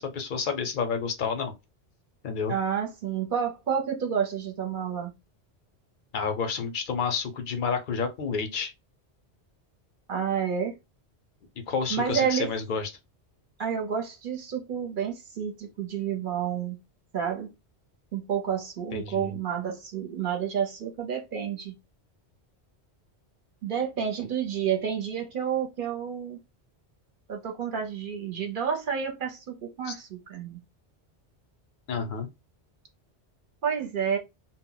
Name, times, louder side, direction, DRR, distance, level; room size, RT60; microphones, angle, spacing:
voice 1, 0.0-1.5 2.2-2.5 6.1-8.7 11.7-12.9 18.9-19.3 29.9-30.0 31.9-32.3, left 5 dB, 55° left, 0.6 m, -30 dB
voice 2, 2.5-5.1 10.1-10.8 11.9-12.5 13.6-16.8 17.1-17.5 18.1-21.7 23.6-26.4 27.3-30.6 33.6-34.2, right 7 dB, 55° right, 0.7 m, -30 dB
2.1 x 2.0 x 3.7 m
omnidirectional pair, 1.1 m